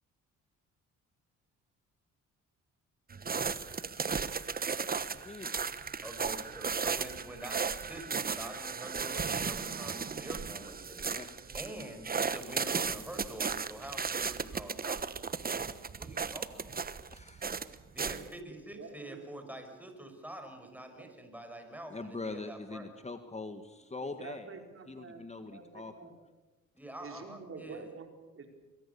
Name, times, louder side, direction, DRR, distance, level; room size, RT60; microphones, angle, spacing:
sound 1, 3.1-18.3, right 5 dB, 30° right, 1.2 m, -35 dB
voice 1, 5.1-5.6 11.1-11.3 17.1-17.9 21.9-26.1, left 3 dB, 20° left, 8 dB, 1.7 m, -43 dB
voice 2, 6.0-15.1 16.0-16.8 17.9-22.8 26.7-27.9, right 1 dB, 5° right, 5 dB, 5.8 m, -46 dB
voice 3, 18.1-19.2 20.9-21.2 24.0-25.2 25.5-26.2 27.0-28.5, right 4 dB, 45° right, 4 dB, 4.8 m, -48 dB
23.5 x 23.5 x 7.0 m, 1.1 s
cardioid pair, 90°, 30 cm